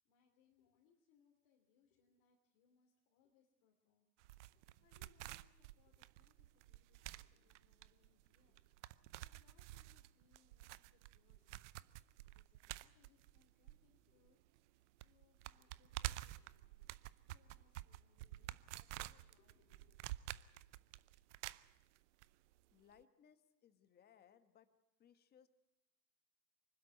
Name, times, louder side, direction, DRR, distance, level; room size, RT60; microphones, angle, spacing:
voice 1, 0.0-14.4 14.7-20.0, left 7 dB, 40° left, 1 dB, 3.1 m, -77 dB
sound 1, 4.2-14.3 14.6-14.7 15.0-22.3 22.5-22.6, right 16 dB, 45° right, 0.7 m, -50 dB
voice 2, 22.7-24.7 25.0-25.5, left 8 dB, 20° left, 10 dB, 1.3 m, -67 dB
25.5 x 12.5 x 9.4 m, 1.0 s
hypercardioid pair, 120°, 50 cm